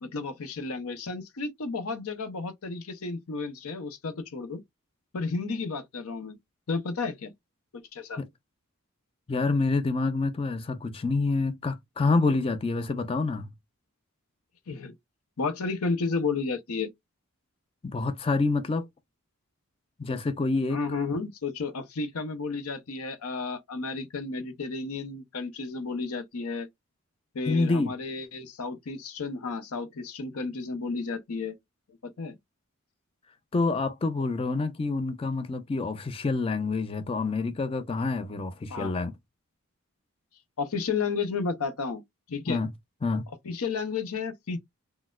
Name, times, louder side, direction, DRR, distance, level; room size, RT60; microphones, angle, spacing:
voice 1, 0.0-4.6 5.1-6.4 6.7-7.3 7.7-8.2 14.7-14.9 15.4-16.9 20.7-26.7 27.3-31.6 32.0-32.4 38.7-38.9 40.6-42.0 42.3-42.6 43.3-44.6, left 4 dB, 75° left, 0.6 m, -32 dB
voice 2, 9.3-13.5 17.8-18.9 20.0-20.8 27.5-27.9 33.5-39.1 42.5-42.7 43.0-43.3, left 3 dB, 25° left, 0.3 m, -27 dB
4.1 x 2.0 x 2.3 m
head